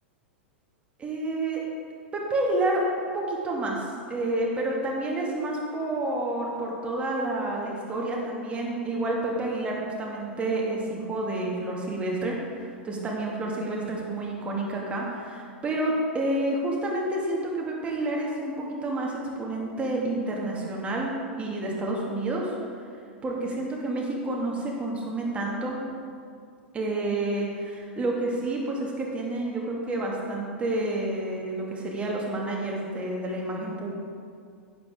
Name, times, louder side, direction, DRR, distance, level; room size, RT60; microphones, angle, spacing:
voice 1, 1.0-1.6 2.1-21.1 21.4-22.5 23.2-25.8 26.7-33.9, right 2 dB, 20° right, -2 dB, 2.2 m, -29 dB
11.0 x 9.2 x 3.7 m, 2.3 s
figure-of-eight pair, 95°, 6 cm